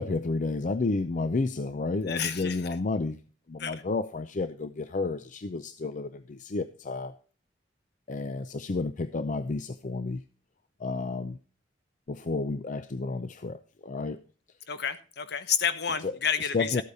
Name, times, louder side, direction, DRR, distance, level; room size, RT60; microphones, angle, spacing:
voice 1, 0.0-3.2 3.5-7.1 8.1-10.2 10.8-11.4 12.1-14.2 16.0-16.1 16.5-16.8, left 3 dB, 45° left, 0.5 m, -31 dB
voice 2, 2.1-2.6 3.6-3.7 14.7-16.8, left 7 dB, 65° left, 1.1 m, -30 dB
13.5 x 8.4 x 4.1 m
head